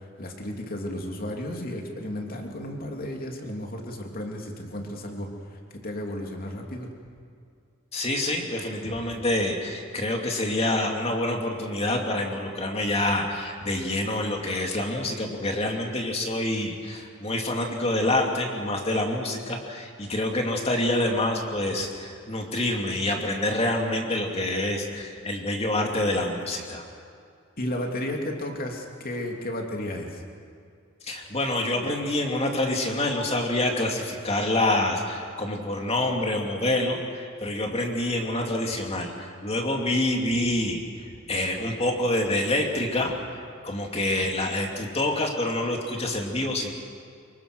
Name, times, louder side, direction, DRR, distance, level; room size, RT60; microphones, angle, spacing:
voice 1, 0.2-6.9 27.6-30.2, left 1 dB, 45° left, 1 dB, 3.1 m, -33 dB
voice 2, 7.9-26.8 31.0-40.8 41.3-43.4 43.6-46.7, left 1 dB, 30° left, 1 dB, 2.6 m, -27 dB
26.0 x 23.5 x 6.3 m, 2.3 s
head